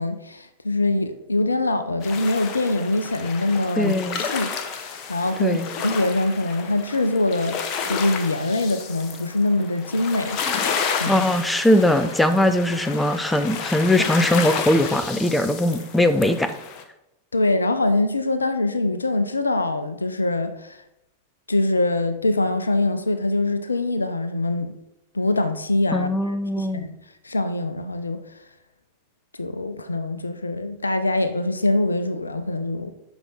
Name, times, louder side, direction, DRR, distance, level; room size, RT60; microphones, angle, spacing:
voice 1, 0.0-10.4 10.9-11.2 17.3-20.8 21.5-24.7 25.1-27.0 27.2-28.2 29.4-32.9, left 2 dB, 80° left, 0.7 m, -24 dB
sound 1, 2.0-16.8, left 6 dB, 40° left, 1.2 m, -31 dB
voice 2, 3.8-4.2 5.4-5.7 11.1-16.5 25.9-26.9, left 1 dB, 5° left, 0.6 m, -20 dB
10.5 x 5.9 x 4.1 m
figure-of-eight pair, 90°, 0 cm